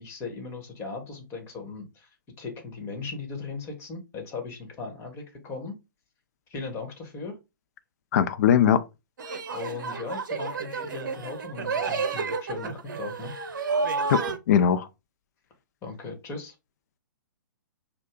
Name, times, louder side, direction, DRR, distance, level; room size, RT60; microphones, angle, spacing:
voice 1, 0.0-2.1 2.4-5.8 6.5-7.4 9.5-13.3 15.8-16.5, left 4 dB, 20° left, 1.5 m, -38 dB
voice 2, 8.1-8.8 14.1-14.9, left 9 dB, 50° left, 0.6 m, -20 dB
sound 1, 9.2-14.4, right 4 dB, 60° right, 0.7 m, -30 dB
5.4 x 2.3 x 3.7 m
figure-of-eight pair, 120°, 11 cm